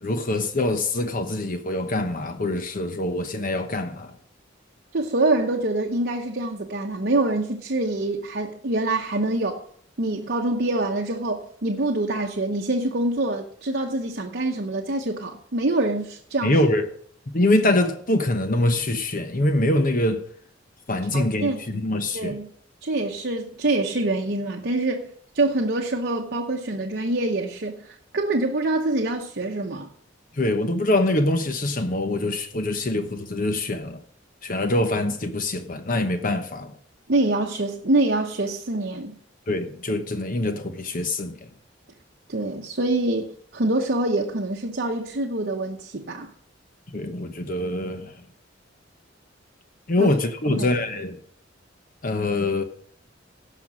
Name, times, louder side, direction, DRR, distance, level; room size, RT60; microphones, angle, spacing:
voice 1, 0.0-4.2 16.4-16.9 17.3-20.3 20.9-22.4 30.3-34.0 34.4-36.7 39.5-41.4 46.9-48.2 49.9-51.2 52.0-52.6, left 1 dB, 45° left, 0.9 m, -24 dB
voice 2, 4.9-9.6 10.0-16.6 21.1-21.8 22.1-22.5 22.8-25.1 25.3-29.9 37.1-39.1 42.3-46.3 50.0-50.1 50.5-50.7, right 2 dB, 55° right, 0.9 m, -25 dB
16.5 x 5.9 x 6.2 m
head